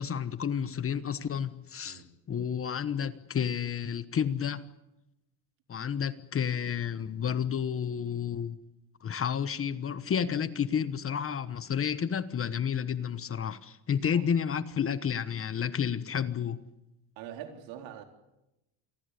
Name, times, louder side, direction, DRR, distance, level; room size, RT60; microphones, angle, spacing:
voice 1, 0.0-2.0 2.3-4.6 5.7-8.6 9.0-16.6, left 7 dB, 30° left, 1.2 m, -31 dB
voice 2, 17.2-18.0, right 10 dB, 75° right, 4.0 m, -43 dB
27.5 x 19.5 x 8.4 m
cardioid pair, 120°, 45 cm